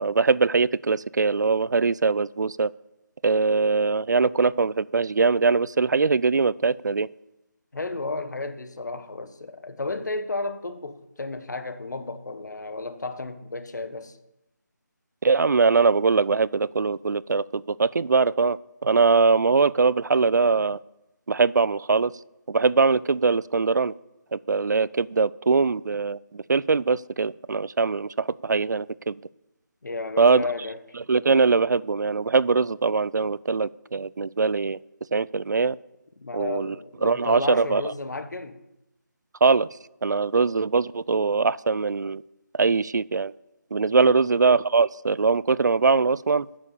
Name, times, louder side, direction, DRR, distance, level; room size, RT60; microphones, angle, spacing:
voice 1, 0.0-2.7 3.2-7.1 15.2-20.8 21.3-22.1 22.5-23.9 24.3-29.2 30.2-30.5 31.1-34.8 35.1-35.8 36.3-36.8 37.0-37.8 39.4-39.7 40.0-42.2 42.5-43.3 43.7-46.5, right 4 dB, 65° right, 0.4 m, -22 dB
voice 2, 7.7-14.2 29.8-30.8 36.2-38.6 43.9-44.1, left 3 dB, 65° left, 1.3 m, -33 dB
9.7 x 7.5 x 6.8 m
figure-of-eight pair, 175°, 10 cm